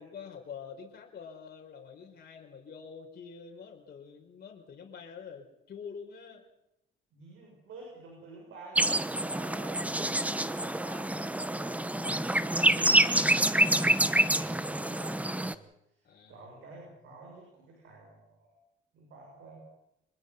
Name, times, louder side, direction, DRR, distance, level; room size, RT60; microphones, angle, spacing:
voice 1, 0.0-6.4 16.0-16.8, left 6 dB, 50° left, 0 dB, 4.4 m, -46 dB
voice 2, 7.1-18.6 18.9-19.6, right 3 dB, 85° right, -1 dB, 7.3 m, -50 dB
sound 1, 8.8-15.5, right 1 dB, 5° right, 1.1 m, -27 dB
25.0 x 20.5 x 5.8 m, 0.83 s
cardioid pair, 90°, 20 cm